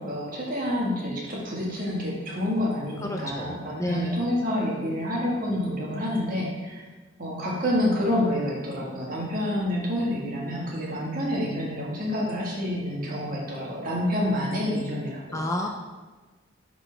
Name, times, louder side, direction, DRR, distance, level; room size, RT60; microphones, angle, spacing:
voice 1, 0.0-6.8 7.2-15.4, left 1 dB, 45° right, -4 dB, 1.6 m, -28 dB
voice 2, 3.0-4.2 15.3-15.7, left 1 dB, 15° left, 1 dB, 0.4 m, -30 dB
8.8 x 4.1 x 3.4 m, 1.3 s
head